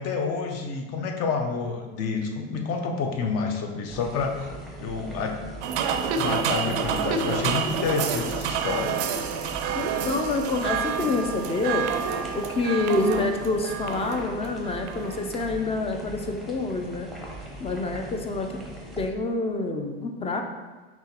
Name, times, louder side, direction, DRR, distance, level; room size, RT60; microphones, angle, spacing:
voice 1, 0.0-4.5 4.8-5.4 6.2-8.9, left 5 dB, 50° left, 3 dB, 0.7 m, -29 dB
sound 1, 3.9-19.1, right 1 dB, ahead, 0.7 m, -40 dB
sound 2, 5.6-15.2, right 6 dB, 90° right, 0.5 m, -28 dB
voice 2, 9.7-11.9 12.3-17.1 17.6-18.5 19.0-20.4, left 3 dB, 20° left, 4 dB, 0.4 m, -27 dB
5.5 x 2.9 x 2.8 m, 1.3 s
supercardioid pair, 110°, 33 cm